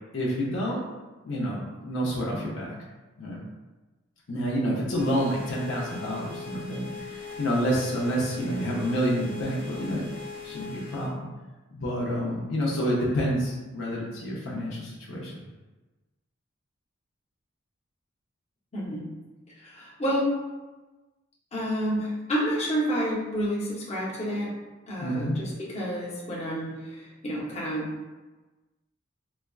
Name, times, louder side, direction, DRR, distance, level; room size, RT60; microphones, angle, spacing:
voice 1, 0.1-0.8 1.2-2.7 3.2-3.4 4.3-10.1 10.4-11.3 11.7-15.3 25.0-25.4, equal, 65° left, -5 dB, 0.6 m, -28 dB
sound 1, 5.0-11.1, left 6 dB, 25° right, 0.7 m, -41 dB
voice 2, 18.7-19.0 19.6-20.3 21.5-24.5 24.9-27.9, equal, 30° left, -6 dB, 0.8 m, -29 dB
4.1 x 2.2 x 2.3 m, 1.2 s
head